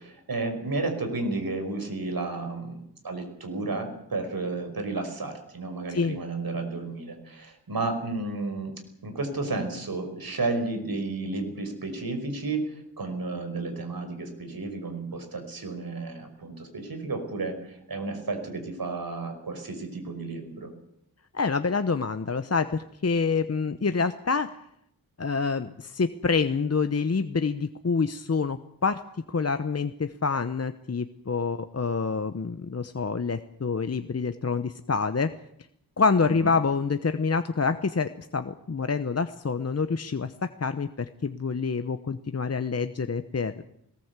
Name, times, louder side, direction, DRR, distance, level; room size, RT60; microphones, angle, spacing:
voice 1, 0.0-2.8 3.0-20.7 36.3-36.5, right 3 dB, 70° right, 6 dB, 5.4 m, -32 dB
voice 2, 21.3-24.5 25.2-29.0 29.3-35.3 36.0-43.6, left 4 dB, 40° left, 9 dB, 1.0 m, -27 dB
21.5 x 19.5 x 8.2 m, 0.75 s
wide cardioid pair, 100°, 37 cm